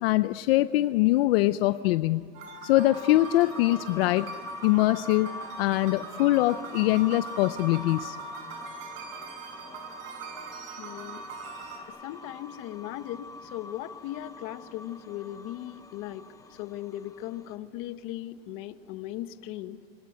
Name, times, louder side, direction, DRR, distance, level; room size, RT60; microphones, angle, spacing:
voice 1, 0.0-2.3 2.6-4.3 4.6-8.2, left 17 dB, 75° left, 12 dB, 0.7 m, -23 dB
sound 1, 2.3-11.8, right 5 dB, 70° right, 6.8 m, -42 dB
sound 2, 2.9-17.6, left 3 dB, 10° left, 0.8 m, -44 dB
voice 2, 10.8-11.3 11.6-19.8, left 13 dB, 45° left, 10 dB, 1.3 m, -38 dB
27.0 x 22.5 x 9.5 m, 2.3 s
supercardioid pair, 160°, 30 cm